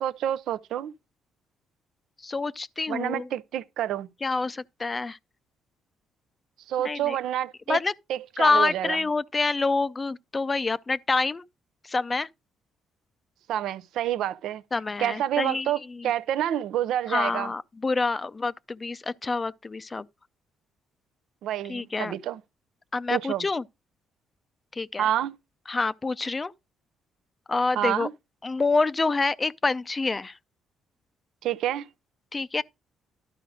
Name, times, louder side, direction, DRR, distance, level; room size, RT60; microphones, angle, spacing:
voice 1, 0.0-0.9 2.9-4.1 6.7-7.8 8.1-9.0 13.5-14.6 15.0-17.5 21.4-22.4 23.1-23.4 25.0-25.4 27.7-28.1 31.4-31.9, right 11 dB, 80° right, 0.5 m, -28 dB
voice 2, 2.2-3.3 4.2-5.2 6.8-7.2 7.7-7.9 8.4-11.4 11.8-12.3 14.7-16.1 17.1-20.1 21.7-22.1 22.9-23.6 24.7-25.1 25.7-26.5 27.5-28.1 28.4-30.4 32.3-32.6, left 3 dB, 25° left, 0.4 m, -27 dB
12.0 x 4.9 x 4.9 m
cardioid pair, 105°, 0 cm